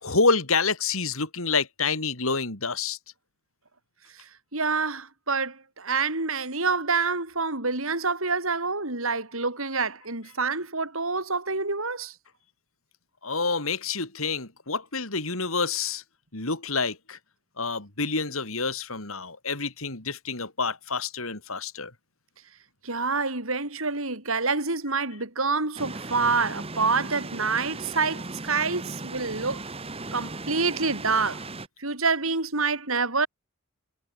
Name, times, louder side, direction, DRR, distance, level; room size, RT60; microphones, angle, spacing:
voice 1, 0.0-3.0 13.2-16.0 16.3-17.2 17.6-21.9, left 4 dB, 75° left, 4.4 m, -28 dB
voice 2, 4.1-12.1 22.8-29.6 30.1-31.5 31.8-33.3, right 4 dB, 75° right, 5.5 m, -27 dB
sound 1, 25.8-31.7, right 2 dB, 25° right, 2.2 m, -37 dB
head